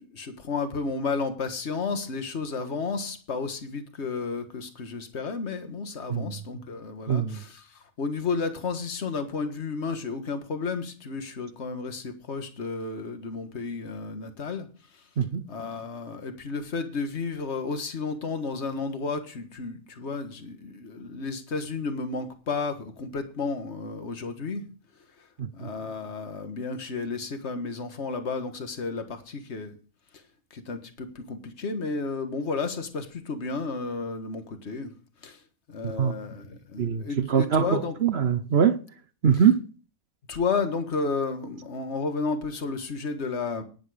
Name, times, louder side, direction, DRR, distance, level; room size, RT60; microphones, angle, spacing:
voice 1, 0.0-14.7 14.9-15.0 15.5-24.7 25.2-25.3 25.5-29.8 30.1-30.2 30.5-34.9 35.2-35.4 35.7-38.0 40.3-43.6, left 4 dB, 50° left, 1.8 m, -32 dB
voice 2, 7.1-7.4 15.2-15.4 25.4-25.7 35.8-36.1 36.8-38.8 39.2-39.6, right 7 dB, 50° right, 0.9 m, -23 dB
11.0 x 10.5 x 5.0 m
omnidirectional pair, 1.6 m